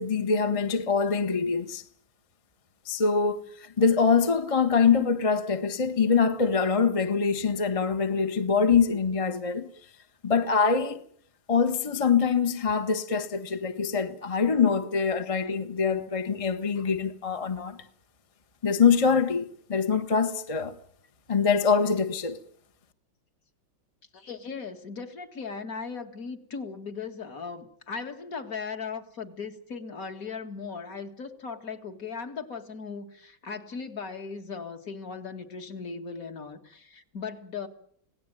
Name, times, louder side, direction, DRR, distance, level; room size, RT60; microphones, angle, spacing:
voice 1, 0.0-1.8 2.9-9.7 10.2-11.0 11.5-17.8 18.6-20.8 21.3-22.4, left 5 dB, 25° left, 0.8 m, -24 dB
voice 2, 24.1-37.7, left 5 dB, 45° left, 2.2 m, -38 dB
26.0 x 17.5 x 9.0 m
omnidirectional pair, 2.2 m